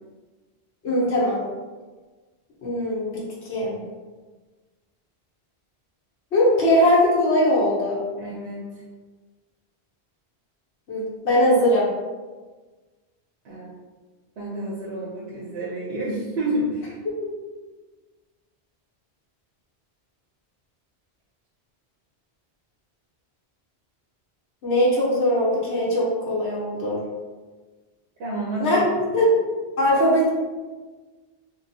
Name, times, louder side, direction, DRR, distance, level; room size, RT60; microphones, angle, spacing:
voice 1, 0.8-1.4 2.6-3.8 6.3-8.0 10.9-11.9 24.6-27.0 28.6-28.9 29.1-29.3 29.8-30.3, equal, 85° left, -6 dB, 1.1 m, -20 dB
voice 2, 8.2-8.7 13.4-13.7 14.4-17.0 28.2-28.8 29.2-29.3, right 1 dB, 75° right, -5 dB, 0.9 m, -29 dB
3.0 x 2.9 x 2.6 m, 1.3 s
omnidirectional pair, 1.1 m